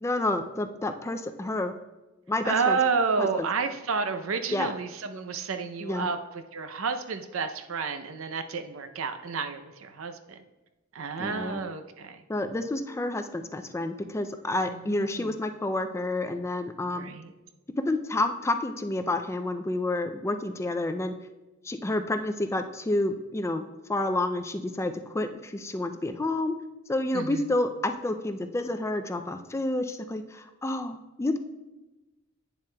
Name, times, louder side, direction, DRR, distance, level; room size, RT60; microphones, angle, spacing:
voice 1, 0.0-1.8 2.3-2.8 3.2-3.5 4.5-4.7 5.8-6.1 11.2-11.6 12.3-17.1 17.9-21.1 21.7-26.5 26.9-31.4, left 2 dB, 15° left, 7 dB, 0.3 m, -29 dB
voice 2, 2.4-10.2 10.9-12.2 14.7-15.4 16.9-17.3 27.1-27.5, right 5 dB, 85° right, 9 dB, 0.6 m, -30 dB
9.1 x 7.2 x 2.2 m, 1.1 s
head